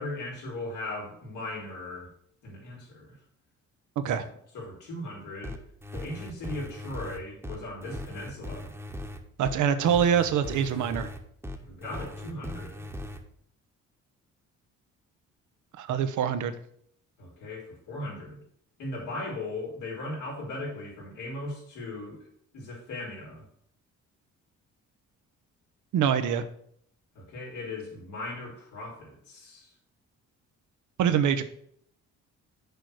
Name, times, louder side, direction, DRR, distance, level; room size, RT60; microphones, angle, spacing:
voice 1, 0.0-2.1 2.4-3.2 4.3-5.6 5.9-8.7 11.7-12.8 17.2-18.4 18.8-22.2 22.5-23.5 27.1-29.7, left 2 dB, 85° left, -3 dB, 3.6 m, -38 dB
voice 2, 4.0-4.3 9.4-11.1 15.8-16.5 25.9-26.5 31.0-31.4, right 8 dB, 75° right, 10 dB, 0.8 m, -24 dB
sound 1, 5.4-13.2, left 1 dB, 10° right, 1.1 m, -39 dB
6.6 x 4.7 x 6.3 m, 0.67 s
cardioid pair, 90°, 30 cm